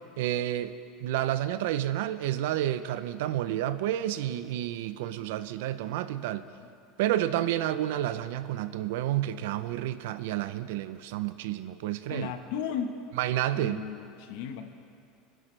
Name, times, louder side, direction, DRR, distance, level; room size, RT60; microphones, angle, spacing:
voice 1, 0.2-6.4 7.0-12.3 13.2-13.8, right 13 dB, 85° right, 13 dB, 0.6 m, -30 dB
voice 2, 12.1-13.0 13.5-14.7, left 7 dB, 75° left, 6 dB, 1.2 m, -35 dB
26.0 x 11.5 x 3.3 m, 2.6 s
cardioid pair, 155°, 0 cm